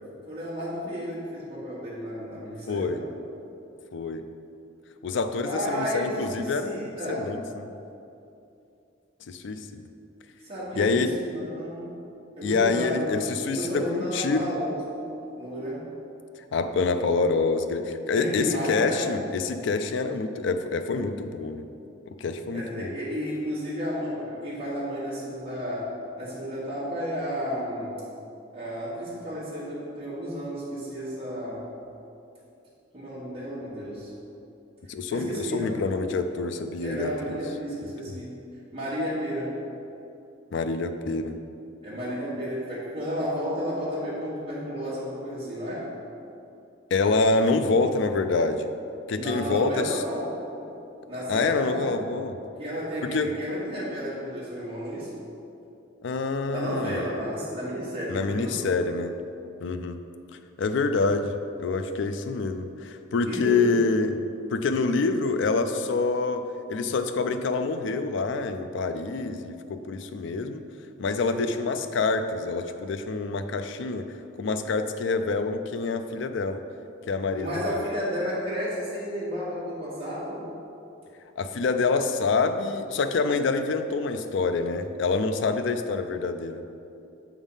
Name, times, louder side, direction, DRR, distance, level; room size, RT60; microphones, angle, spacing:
voice 1, 0.3-3.1 5.4-7.3 10.4-12.0 12.4-13.1 13.5-15.1 15.3-15.9 18.1-19.1 22.5-25.9 26.1-28.0 28.5-31.7 32.9-34.1 35.1-35.8 36.8-38.4 38.7-39.6 41.8-45.9 49.1-50.3 50.6-50.7 51.1-52.0 52.6-55.1 56.5-58.9 63.2-63.8 71.3-71.6 77.4-80.4, equal, 30° right, -10 dB, 1.4 m, -32 dB
voice 2, 2.7-3.0 3.9-4.2 5.0-7.7 9.3-9.9 10.7-11.1 12.4-14.5 16.5-21.7 22.1-22.9 34.9-37.4 40.5-41.4 46.9-48.7 49.1-50.0 51.3-52.4 53.0-53.3 56.0-57.1 58.1-59.1 59.6-60.0 60.6-64.2 64.5-70.7 71.0-74.1 74.4-76.6 77.1-77.8 81.4-86.6, left 4 dB, 65° left, 9 dB, 0.4 m, -26 dB
7.2 x 3.5 x 5.5 m, 2.7 s
head